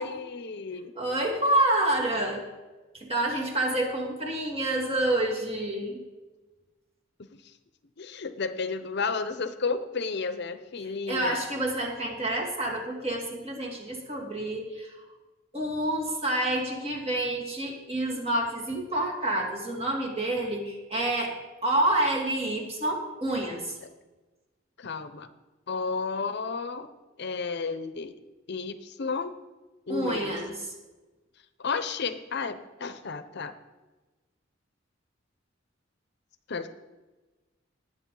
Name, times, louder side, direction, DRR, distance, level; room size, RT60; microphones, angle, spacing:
voice 1, 0.0-0.9 8.0-11.4 23.8-23.9 24.8-25.3 25.7-26.9 27.2-28.2 28.5-29.3 29.9-30.3 31.6-33.5 36.5-36.7, left 4 dB, 60° left, 11 dB, 0.7 m, -32 dB
voice 2, 0.9-2.4 2.9-6.0 11.1-14.9 15.5-23.7 29.9-30.6, right 1 dB, 35° right, 0 dB, 2.4 m, -28 dB
19.5 x 7.8 x 3.8 m, 1.2 s
head